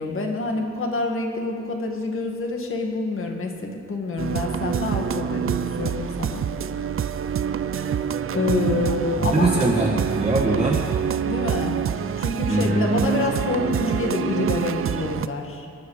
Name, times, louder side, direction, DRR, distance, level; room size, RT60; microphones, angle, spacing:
voice 1, 0.0-6.4 6.7-7.0 8.3-9.7 11.2-15.7, left 3 dB, 45° left, 2 dB, 2.1 m, -27 dB
sound 1, 4.2-15.3, right 8 dB, 45° right, 0.6 m, -26 dB
voice 2, 9.2-10.8 12.5-13.1, right 2 dB, 20° right, -6 dB, 2.0 m, -22 dB
23.5 x 10.5 x 5.1 m, 2.3 s
cardioid pair, 120°, 29 cm